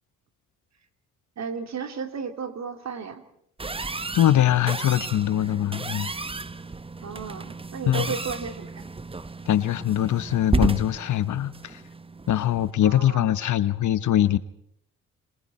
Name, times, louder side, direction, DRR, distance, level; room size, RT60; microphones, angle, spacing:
voice 1, 1.4-3.2 7.0-8.8 12.8-13.3, right 5 dB, 55° right, 3.0 m, -34 dB
sound 1, 3.6-12.7, right 3 dB, 15° right, 1.0 m, -32 dB
voice 2, 4.1-6.1 7.9-8.1 9.5-11.8 12.3-14.4, left 12 dB, 65° left, 1.2 m, -22 dB
27.5 x 26.5 x 4.4 m
supercardioid pair, 65°, 32 cm